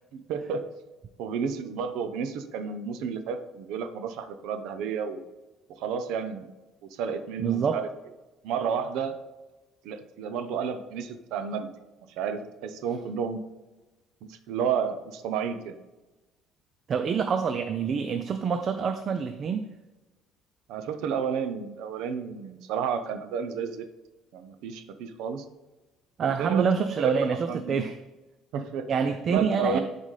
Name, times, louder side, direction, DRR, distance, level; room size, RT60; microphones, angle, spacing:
voice 1, 0.1-0.6 1.2-5.2 5.8-6.5 7.0-7.9 8.4-9.2 9.8-11.7 12.2-13.4 14.2-15.7 20.7-23.9 24.3-25.4 26.4-26.7 27.0-27.9 28.5-29.8, right 6 dB, 70° right, 9 dB, 0.7 m, -31 dB
voice 2, 7.4-7.8 16.9-19.7 26.2-28.0 28.9-29.8, right 6 dB, 30° right, 9 dB, 0.3 m, -26 dB
11.0 x 4.0 x 3.3 m, 1.1 s
cardioid pair, 180°, 0 cm